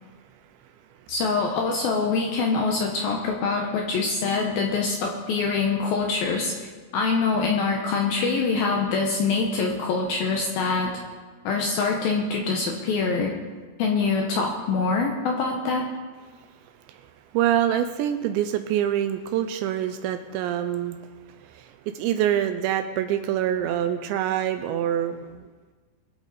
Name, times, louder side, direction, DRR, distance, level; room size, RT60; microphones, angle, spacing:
voice 1, 1.1-6.6 6.9-11.0 11.4-13.4 13.8-15.9, left 4 dB, 80° left, 1 dB, 2.2 m, -24 dB
voice 2, 17.3-21.0 21.4-25.5, right 10 dB, 85° right, 8 dB, 2.7 m, -25 dB
23.0 x 8.0 x 4.1 m, 1.4 s
omnidirectional pair, 5.6 m